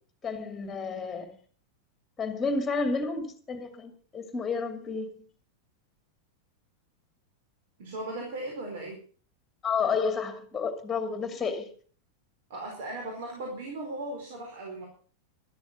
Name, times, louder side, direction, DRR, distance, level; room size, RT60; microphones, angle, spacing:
voice 1, 0.2-1.3 2.2-5.2 9.6-11.7, left 4 dB, 15° left, 2.5 m, -31 dB
voice 2, 7.8-9.0 12.5-14.8, right 2 dB, 55° right, 4.6 m, -37 dB
13.0 x 13.0 x 5.9 m
figure-of-eight pair, 90°, 0 cm